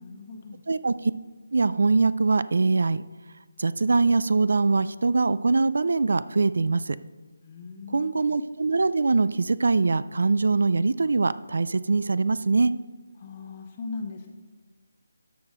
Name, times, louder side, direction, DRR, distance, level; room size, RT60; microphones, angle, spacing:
voice 1, 0.0-0.6 7.4-8.2 13.2-14.3, left 4 dB, 30° left, 3 dB, 0.9 m, -39 dB
voice 2, 0.7-1.1 1.5-3.0 3.6-7.0 7.9-12.7, right 3 dB, 65° right, 16 dB, 0.3 m, -23 dB
13.5 x 4.9 x 3.8 m, 1.4 s
figure-of-eight pair, 160°, 0 cm